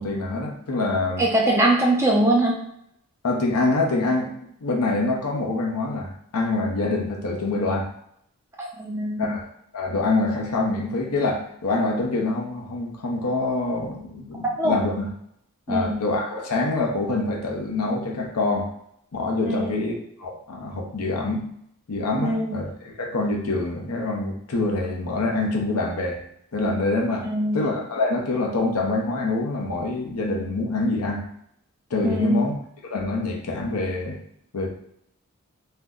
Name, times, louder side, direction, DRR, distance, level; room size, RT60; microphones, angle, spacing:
voice 1, 0.0-1.3 3.2-4.3 4.6-7.9 9.2-9.5 9.7-15.1 15.7-18.7 19.1-21.5 21.9-26.2 26.5-27.3 27.5-31.2 31.9-32.6 32.9-34.2 34.5-34.7, left 2 dB, 90° left, 0 dB, 0.7 m, -25 dB
voice 2, 1.2-2.6 8.6-9.3 14.6-14.8 15.7-16.0 19.5-19.8 22.2-22.6 27.3-27.6 32.0-32.4, right 1 dB, 10° right, -3 dB, 0.6 m, -22 dB
2.7 x 2.1 x 3.6 m, 0.73 s
head